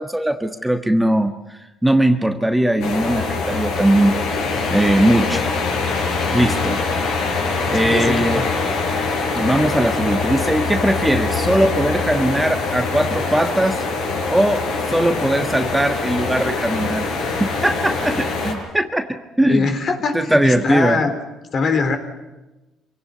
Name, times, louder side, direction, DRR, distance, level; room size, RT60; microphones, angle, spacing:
voice 1, 0.0-4.1 4.7-5.5 6.3-6.8 7.7-8.4 9.3-13.8 14.3-17.1 17.4-19.7 20.1-21.0, right 1 dB, 5° right, 7 dB, 1.5 m, -19 dB
sound 1, 2.8-18.5, left 4 dB, 75° left, 6.7 m, -23 dB
voice 2, 7.8-8.4 19.5-21.1 21.5-22.0, left 4 dB, 45° left, 7 dB, 3.8 m, -21 dB
26.0 x 17.0 x 9.7 m, 1.1 s
cardioid pair, 95°, 0 cm